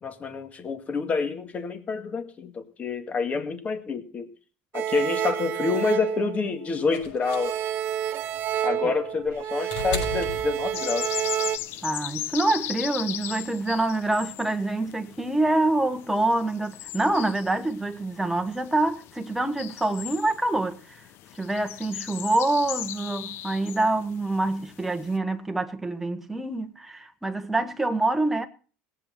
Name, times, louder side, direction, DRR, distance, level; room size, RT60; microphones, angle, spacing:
voice 1, 0.0-4.3 4.7-7.6 8.6-11.2, left 4 dB, 30° left, 2.0 m, -28 dB
sound 1, 4.7-6.9 7.2-11.6, right 10 dB, 45° right, 0.8 m, -29 dB
sound 2, 6.9-11.2 12.4-12.5, left 5 dB, 80° left, 6.2 m, -36 dB
sound 3, 10.7-25.2, left 12 dB, 55° left, 0.8 m, -38 dB
voice 2, 11.8-21.0 21.3-28.5, right 2 dB, 5° right, 1.3 m, -26 dB
17.5 x 8.4 x 5.9 m
supercardioid pair, 130°, 5 cm